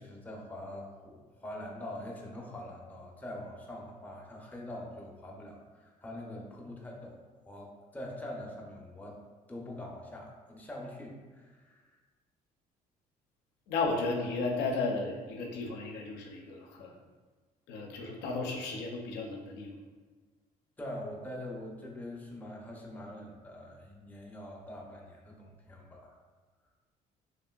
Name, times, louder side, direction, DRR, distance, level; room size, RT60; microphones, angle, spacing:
voice 1, 0.0-9.2 9.5-12.0 20.8-26.1, left 1 dB, 10° left, -2 dB, 0.5 m, -44 dB
voice 2, 13.7-16.9 17.7-19.8, left 3 dB, 85° left, 1 dB, 0.5 m, -34 dB
3.0 x 2.5 x 2.2 m, 1.4 s
cardioid pair, 110°, 17 cm